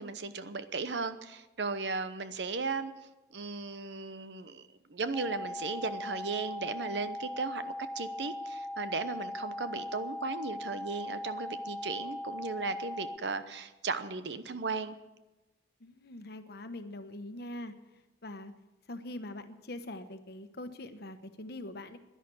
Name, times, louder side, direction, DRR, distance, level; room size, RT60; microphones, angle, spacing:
voice 1, 0.0-2.9 3.3-15.0, right 4 dB, 75° right, 12 dB, 0.9 m, -36 dB
sound 1, 5.1-13.2, left 1 dB, 5° left, 0.4 m, -39 dB
voice 2, 15.8-18.5 18.9-22.0, left 1 dB, 65° left, 9 dB, 1.1 m, -43 dB
11.0 x 11.0 x 8.4 m, 1.1 s
head